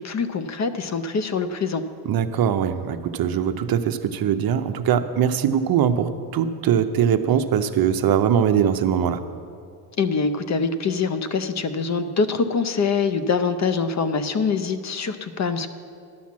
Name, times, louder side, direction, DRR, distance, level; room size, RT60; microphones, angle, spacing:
voice 1, 0.0-1.8 10.0-15.7, left 5 dB, 35° left, 10 dB, 0.6 m, -24 dB
voice 2, 2.0-9.2, right 8 dB, 45° right, 9 dB, 0.6 m, -21 dB
12.0 x 5.8 x 7.3 m, 2.4 s
supercardioid pair, 80°, 49 cm